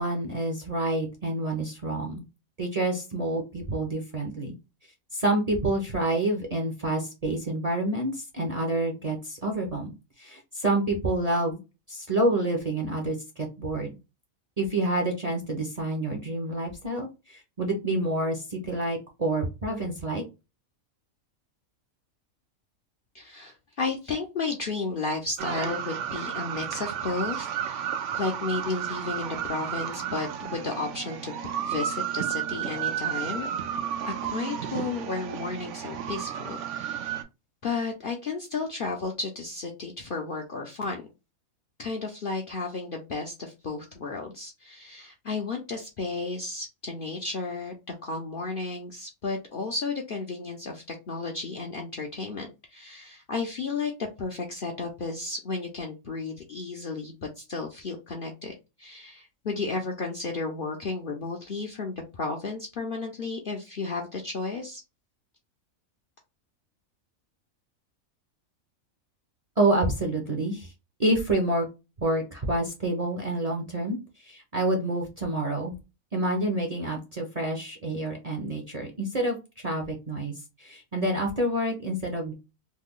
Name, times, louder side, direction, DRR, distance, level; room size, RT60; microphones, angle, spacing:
voice 1, 0.0-2.2 2.6-4.5 5.1-9.9 10.2-11.6 11.9-13.2 13.6-13.9 14.6-20.2 69.6-70.7 71.0-71.7 72.0-74.0 74.2-75.7 76.1-80.3 80.6-82.3, right 1 dB, 40° right, 1 dB, 0.6 m, -28 dB
voice 2, 23.1-33.5 34.1-37.2 37.6-41.1 41.8-53.9 54.2-58.5 58.8-64.8, left 4 dB, 55° left, 1 dB, 0.6 m, -33 dB
sound 1, 25.4-37.2, right 9 dB, 70° right, 0.8 m, -32 dB
3.2 x 2.2 x 3.6 m, 0.27 s
omnidirectional pair, 1.4 m